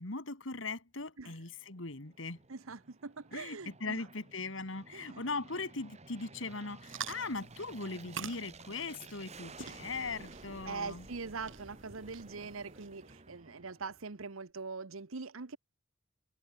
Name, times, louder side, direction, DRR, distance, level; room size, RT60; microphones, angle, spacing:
voice 1, 0.0-2.4 3.3-11.1, left 3 dB, 65° left, 2.5 m, -39 dB
Aircraft, 1.5-14.2, right 3 dB, 30° right, 1.9 m, -54 dB
voice 2, 2.5-4.0 4.9-5.2 10.6-15.6, right 4 dB, 85° right, 1.1 m, -43 dB
sound 1, 6.8-13.1, right 7 dB, 65° right, 6.7 m, -48 dB
head